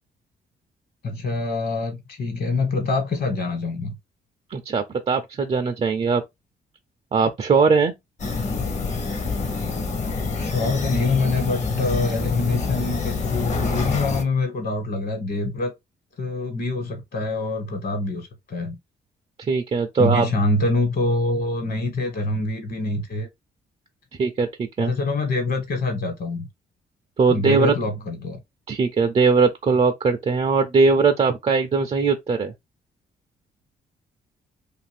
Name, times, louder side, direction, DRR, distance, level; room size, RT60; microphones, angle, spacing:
voice 1, 1.0-3.9 10.3-15.7 16.2-18.7 20.0-23.3 24.8-26.5 27.3-28.4, left 2 dB, 60° left, 1.3 m, -25 dB
voice 2, 4.5-6.2 7.1-7.9 19.5-20.3 24.2-24.5 24.8-24.9 27.2-27.7 28.7-32.5, right 4 dB, 35° right, 0.4 m, -20 dB
sound 1, 8.2-14.2, left 4 dB, 40° left, 0.8 m, -26 dB
2.6 x 2.5 x 3.2 m
cardioid pair, 100°, 18 cm